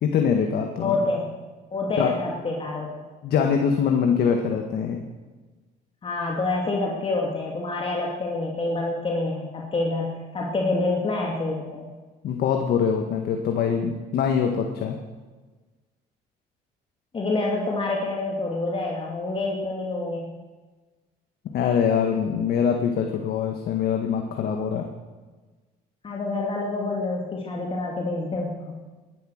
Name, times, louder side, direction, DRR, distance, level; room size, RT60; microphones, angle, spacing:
voice 1, 0.0-0.9 2.0-2.1 3.2-5.0 12.2-15.0 21.5-24.9, left 7 dB, 65° left, 3 dB, 1.7 m, -23 dB
voice 2, 0.8-1.3 1.7-2.9 6.0-11.9 17.1-20.3 26.0-28.8, left 2 dB, 30° left, -1 dB, 2.5 m, -27 dB
20.0 x 11.0 x 6.5 m, 1.3 s
cardioid pair, 110°, 17 cm